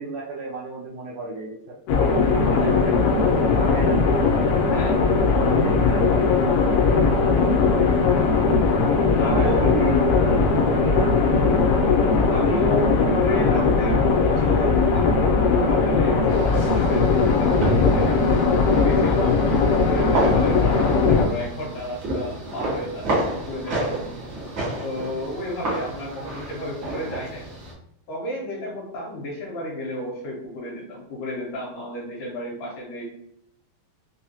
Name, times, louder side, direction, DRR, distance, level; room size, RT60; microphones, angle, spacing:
voice 1, 0.0-1.8 2.2-4.0 5.3-6.9 9.1-11.6, right 4 dB, 90° right, -4 dB, 1.7 m, -33 dB
sound 1, 1.9-21.3, left 4 dB, 85° left, 2.5 m, -19 dB
voice 2, 4.7-5.0 9.2-9.8 12.3-19.4 19.8-24.2 24.8-27.5 28.1-33.0, left 1 dB, 70° left, -4 dB, 2.5 m, -31 dB
sound 2, 16.3-27.7, right 1 dB, 65° right, 1.2 m, -30 dB
5.9 x 2.0 x 2.8 m, 0.73 s
omnidirectional pair, 4.2 m